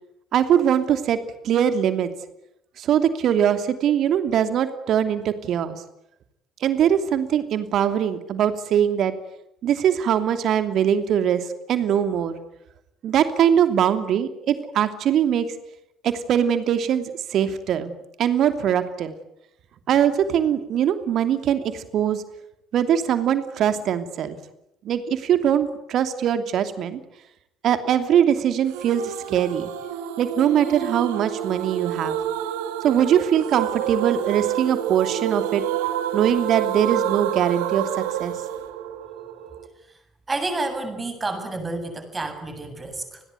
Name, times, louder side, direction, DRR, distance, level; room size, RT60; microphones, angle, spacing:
voice 1, 0.3-1.2 1.4-2.1 2.8-5.8 6.6-9.1 9.6-12.4 13.0-15.5 16.0-17.9 18.2-19.1 19.9-22.2 22.7-24.4 24.8-27.0 27.6-29.7 30.2-32.2 32.8-35.6 36.1-38.3, right 9 dB, 50° right, 10 dB, 2.8 m, -22 dB
sound 1, 28.7-39.7, right 11 dB, 65° right, 2.1 m, -28 dB
voice 2, 40.3-43.2, right 2 dB, 20° right, 7 dB, 7.5 m, -29 dB
29.5 x 21.0 x 9.4 m, 0.81 s
figure-of-eight pair, 55°, 0 cm